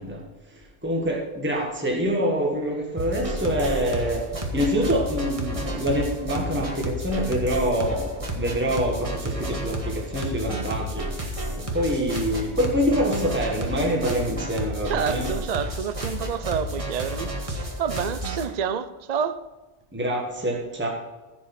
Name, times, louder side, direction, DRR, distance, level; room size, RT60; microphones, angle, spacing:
voice 1, 0.0-15.3 19.9-20.9, equal, 10° right, 1.5 m, -26 dB
sound 1, 3.0-18.4, equal, 30° right, 1.5 m, -31 dB
voice 2, 14.9-19.4, right 7 dB, 50° right, 0.5 m, -29 dB
15.0 x 5.4 x 5.9 m
omnidirectional pair, 1.2 m